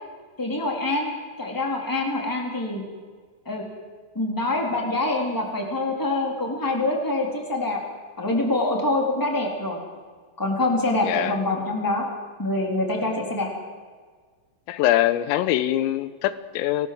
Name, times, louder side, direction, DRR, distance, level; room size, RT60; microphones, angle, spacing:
voice 1, 0.4-1.1 1.4-2.8 3.4-3.6 4.1-7.8 8.2-9.8 10.4-12.1 12.4-13.5, left 2 dB, 5° left, 1 dB, 3.0 m, -25 dB
voice 2, 11.0-11.4 14.7-16.9, left 13 dB, 90° left, 14 dB, 3.6 m, -23 dB
28.0 x 18.5 x 7.9 m, 1.5 s
omnidirectional pair, 5.8 m